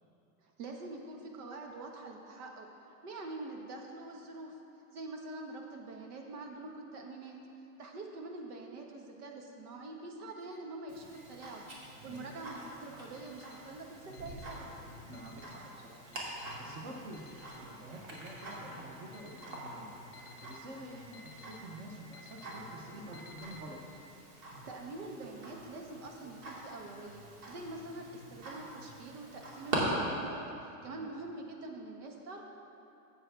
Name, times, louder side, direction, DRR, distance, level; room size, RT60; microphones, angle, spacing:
voice 1, 0.4-2.7 3.0-4.6 4.9-7.4 7.8-11.7 12.0-14.7 24.6-32.4, right 2 dB, 85° right, 2 dB, 1.6 m, -45 dB
Alarm, 10.3-10.6 11.1-11.6 12.1-12.6 13.1-13.6 14.1-14.6 15.1-15.6 16.1-16.6 17.1-17.6 18.1-18.6 19.1-19.6 20.1-20.6 21.1-21.6 22.1-22.6 23.1-23.6, left 4 dB, 30° left, 0.7 m, -56 dB
Tick-tock, 10.9-29.8, right 2 dB, 65° right, 2.5 m, -46 dB
voice 2, 15.1-16.1 16.3-17.3 17.6-23.8 30.8-31.1, right 1 dB, 20° right, 0 dB, 0.6 m, -49 dB
13.0 x 8.0 x 3.4 m, 2.9 s
supercardioid pair, 170°, 44 cm